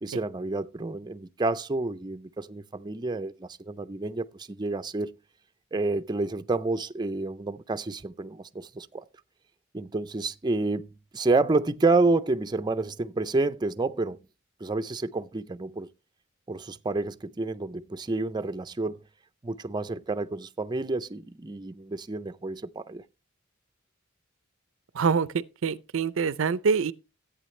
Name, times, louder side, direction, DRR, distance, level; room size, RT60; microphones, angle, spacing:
voice 1, 0.0-5.1 5.7-9.0 9.7-14.2 14.6-15.9 16.5-19.0 19.4-23.0, right 3 dB, 20° right, 0.5 m, -29 dB
voice 2, 24.9-26.9, right 5 dB, 75° right, 0.5 m, -25 dB
14.0 x 8.5 x 3.2 m
head